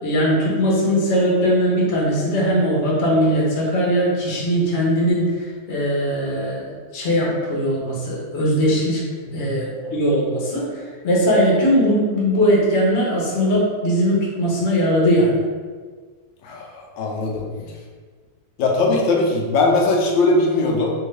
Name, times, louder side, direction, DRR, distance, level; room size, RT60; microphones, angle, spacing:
voice 1, 0.0-9.0 9.3-10.7 11.0-15.4, equal, 45° left, -4 dB, 0.9 m, -20 dB
voice 2, 16.4-17.4 18.6-20.9, left 2 dB, 85° left, 0 dB, 1.4 m, -20 dB
3.6 x 2.7 x 3.2 m, 1.5 s
omnidirectional pair, 2.0 m